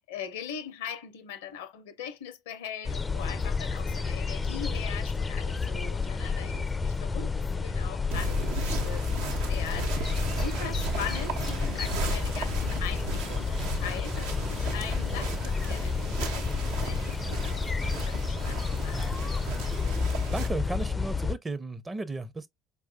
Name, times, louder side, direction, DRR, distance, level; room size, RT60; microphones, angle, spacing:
voice 1, 0.0-19.3, left 8 dB, 75° left, 0.5 m, -41 dB
sound 1, 2.8-21.4, left 4 dB, 20° left, 0.4 m, -30 dB
sound 2, 8.1-20.5, right 3 dB, 70° right, 0.8 m, -36 dB
voice 2, 20.3-22.5, right 3 dB, 20° right, 0.6 m, -34 dB
4.5 x 2.2 x 2.6 m
figure-of-eight pair, 60°, 0 cm